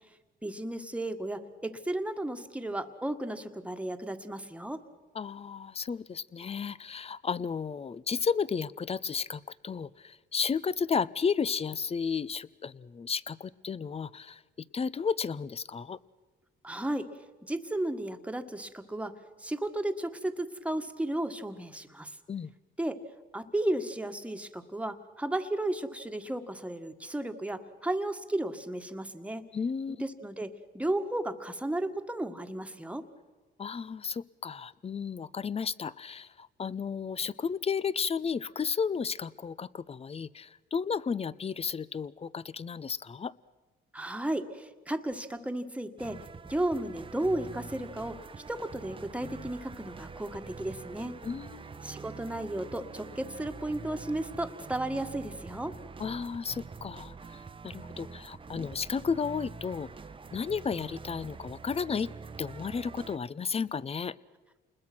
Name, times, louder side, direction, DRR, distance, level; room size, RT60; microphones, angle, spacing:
voice 1, 0.4-4.8 16.6-17.1 17.4-19.1 19.4-22.2 22.8-23.0 23.3-29.4 29.9-33.0 43.9-46.2 46.4-48.2 48.5-51.1 51.8-55.7, right 1 dB, 5° right, 6 dB, 1.7 m, -34 dB
voice 2, 5.1-16.0 22.3-22.5 29.5-30.0 33.6-43.3 51.2-51.8 56.0-59.9 60.3-62.1 62.4-64.1, left 6 dB, 30° left, 20 dB, 0.7 m, -33 dB
sound 1, 46.0-63.2, right 4 dB, 25° right, 0.9 m, -45 dB
28.5 x 21.0 x 6.2 m, 1.3 s
cardioid pair, 90°, 20 cm